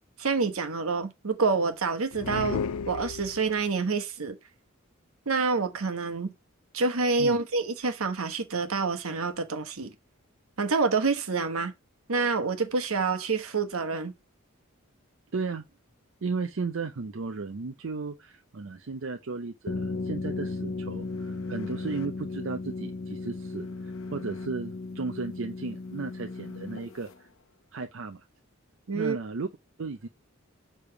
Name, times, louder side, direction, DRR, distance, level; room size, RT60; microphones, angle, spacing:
voice 1, 0.2-4.4 5.3-6.3 6.7-9.9 10.6-11.7 12.1-14.1 28.9-29.2, right 4 dB, 80° right, 1.2 m, -27 dB
sound 1, 2.1-3.7, left 6 dB, 85° left, 0.4 m, -33 dB
voice 2, 15.3-15.6 16.2-27.3 27.7-28.2 28.9-29.5 29.8-30.1, right 4 dB, 60° right, 0.5 m, -35 dB
sound 2, 19.7-27.1, left 3 dB, 70° left, 0.8 m, -36 dB
6.9 x 3.4 x 4.6 m
head